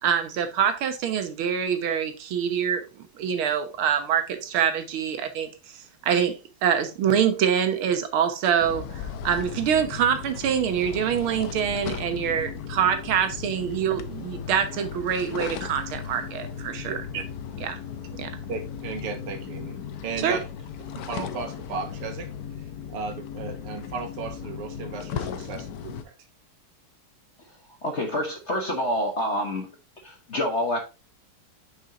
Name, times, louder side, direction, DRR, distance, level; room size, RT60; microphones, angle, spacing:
voice 1, 0.0-2.8 3.2-5.5 6.1-17.2 17.6-17.8 18.2-18.3 20.2-20.4, right 8 dB, 70° right, 1.9 m, -25 dB
sound 1, 8.6-26.0, left 8 dB, 70° left, 0.9 m, -36 dB
voice 2, 18.5-20.4 20.9-22.3 22.9-26.1, right 5 dB, 90° right, 2.2 m, -35 dB
voice 3, 27.8-29.7 30.0-30.8, left 1 dB, 45° left, 1.0 m, -27 dB
6.0 x 5.7 x 3.6 m
omnidirectional pair, 2.4 m